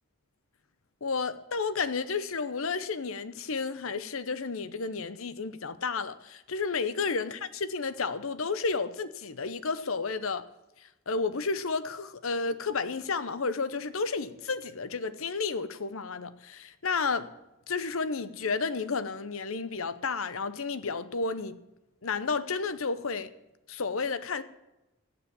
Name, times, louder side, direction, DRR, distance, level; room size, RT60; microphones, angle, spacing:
voice 1, 1.0-10.5 11.1-17.3 17.7-21.6 22.0-23.3 23.7-24.4, left 4 dB, 75° left, 0.9 m, -31 dB
15.0 x 9.6 x 7.0 m
head